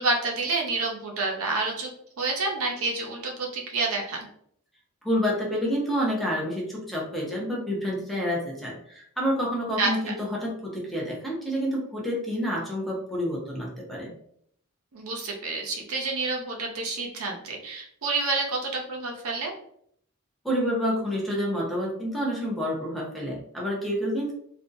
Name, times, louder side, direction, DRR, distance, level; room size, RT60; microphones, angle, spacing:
voice 1, 0.0-1.9 2.2-4.3 9.8-10.1 14.9-19.5, right 3 dB, 75° right, 1 dB, 0.6 m, -28 dB
voice 2, 5.0-14.1 20.4-24.3, equal, ahead, -3 dB, 0.7 m, -28 dB
2.6 x 2.3 x 2.5 m, 0.66 s
head